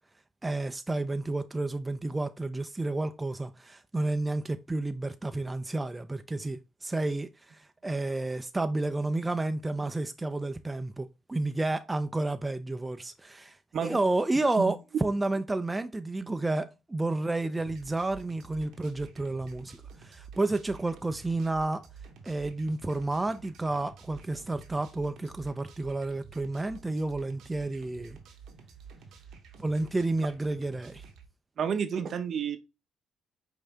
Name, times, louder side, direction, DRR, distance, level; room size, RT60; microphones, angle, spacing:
voice 1, 0.4-21.8 22.2-28.2 29.6-31.0, right 2 dB, 15° right, 0.4 m, -31 dB
sound 1, 17.5-31.3, right 6 dB, 85° right, 1.0 m, -50 dB
voice 2, 31.6-32.6, right 7 dB, 60° right, 0.7 m, -30 dB
5.4 x 2.7 x 3.4 m
cardioid pair, 90°, 0 cm